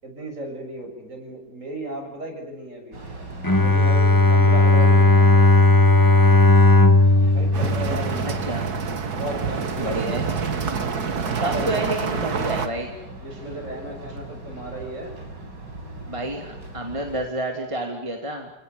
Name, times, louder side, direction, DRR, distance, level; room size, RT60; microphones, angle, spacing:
voice 1, 0.0-3.0 3.5-5.5 7.3-8.5 9.1-10.0 11.2-12.4 13.2-15.2, right 1 dB, 45° right, 3 dB, 7.2 m, -35 dB
sound 1, 2.9-17.3, right 2 dB, 80° right, 5.3 m, -39 dB
Bowed string instrument, 3.4-8.7, left 2 dB, 10° left, 1.3 m, -16 dB
sound 2, 7.5-12.7, right 5 dB, 60° right, 2.3 m, -27 dB
voice 2, 8.2-8.6 9.8-10.2 11.4-12.9 16.1-18.5, right 1 dB, 15° right, 2 dB, 2.9 m, -29 dB
29.5 x 19.0 x 9.5 m, 0.88 s
omnidirectional pair, 1.9 m